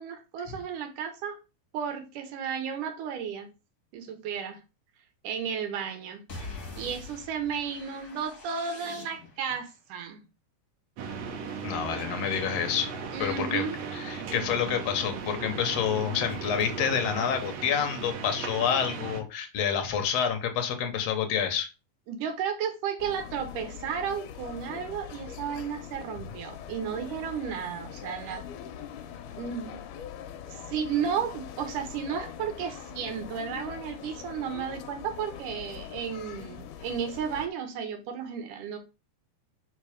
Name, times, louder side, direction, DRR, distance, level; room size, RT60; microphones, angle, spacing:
voice 1, 0.0-1.4 1.7-3.5 3.9-4.6 5.2-6.2 6.8-10.2 13.1-13.8 22.1-28.4 29.3-29.8 30.5-38.8, right 7 dB, 80° right, 2.5 m, -33 dB
sound 1, 6.3-9.5, left 2 dB, 35° left, 2.2 m, -44 dB
sound 2, 11.0-19.2, right 5 dB, 65° right, 1.9 m, -37 dB
voice 2, 11.6-12.9 13.2-13.7 13.9-21.7, left 8 dB, 60° left, 1.9 m, -28 dB
sound 3, 23.0-37.5, left 9 dB, 80° left, 2.2 m, -43 dB
5.0 x 4.4 x 5.0 m
omnidirectional pair, 3.7 m